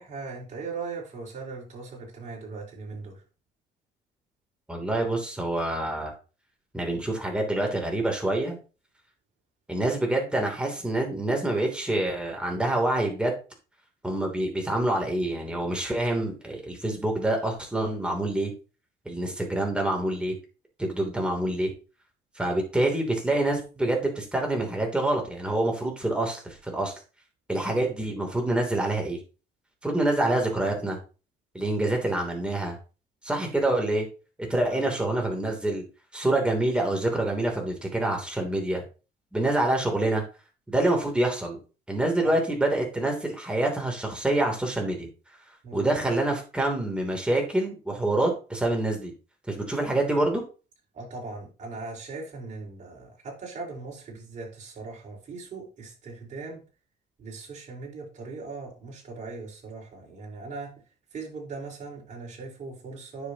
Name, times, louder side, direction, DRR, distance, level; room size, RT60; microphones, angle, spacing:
voice 1, 0.0-3.2 34.6-35.2 42.2-42.3 45.6-46.0 50.9-56.6 57.2-60.7 61.1-63.3, right 4 dB, 45° right, -1 dB, 4.5 m, -39 dB
voice 2, 4.7-6.1 6.7-8.6 9.7-13.3 14.0-18.5 19.0-20.4 20.8-21.7 22.4-26.9 27.5-29.2 29.8-31.0 31.5-32.8 33.2-34.1 34.5-35.8 36.1-38.8 39.3-40.2 40.7-41.6 41.9-45.1 45.7-49.1 49.5-50.4, right 1 dB, 5° right, 1 dB, 3.0 m, -26 dB
9.7 x 6.8 x 2.9 m, 0.33 s
cardioid pair, 110°, 17 cm